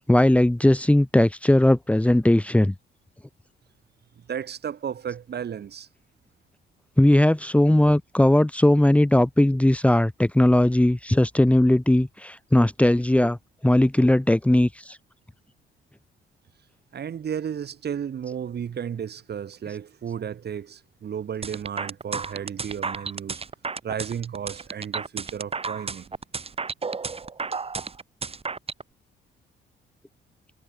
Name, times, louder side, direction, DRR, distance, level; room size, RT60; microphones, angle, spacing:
voice 1, 0.1-2.7 7.0-13.4 13.6-15.0, left 1 dB, 5° left, 1.8 m, -19 dB
voice 2, 4.2-5.9 16.9-23.4 23.8-26.1, right 8 dB, 55° right, 6.6 m, -33 dB
sound 1, 21.4-28.8, right 4 dB, 30° right, 2.1 m, -32 dB
cardioid pair, 90°, 20 cm